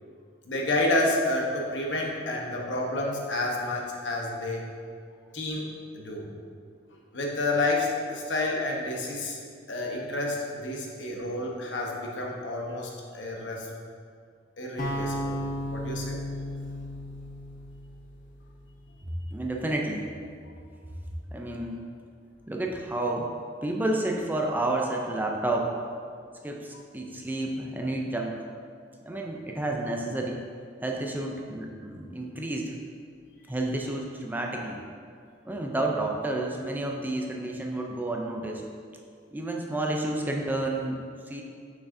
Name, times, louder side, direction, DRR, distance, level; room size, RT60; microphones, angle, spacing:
voice 1, 0.4-4.6 5.3-5.7 5.9-6.2 7.1-9.4 9.7-13.7 14.6-15.4 15.7-16.2, left 2 dB, 75° left, -2 dB, 1.0 m, -29 dB
sound 1, 14.8-18.9, left 1 dB, 45° left, 0.8 m, -35 dB
voice 2, 19.3-20.1 21.3-21.8 22.5-23.3 23.6-25.7 26.4-28.4 29.0-30.4 30.8-32.7 33.5-34.8 35.4-38.6 39.3-41.4, right 2 dB, 10° right, 0 dB, 0.4 m, -30 dB
6.2 x 6.0 x 2.6 m, 2.2 s
head